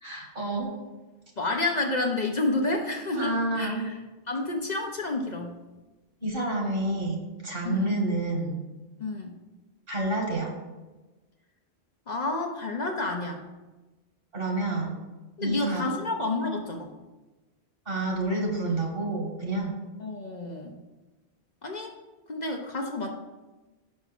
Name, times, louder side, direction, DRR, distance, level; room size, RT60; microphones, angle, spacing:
voice 1, 0.0-0.7 3.1-3.9 6.2-8.6 9.9-10.5 14.3-14.9 15.4-15.8 17.9-19.7, right 2 dB, 60° right, 0 dB, 1.9 m, -29 dB
voice 2, 1.4-4.0 4.3-5.6 7.6-7.9 9.0-9.4 12.1-13.5 15.4-16.9 20.0-20.8 21.6-21.9 22.3-23.1, left 2 dB, 45° left, 2 dB, 0.7 m, -30 dB
5.9 x 5.3 x 5.9 m, 1.2 s
omnidirectional pair, 1.1 m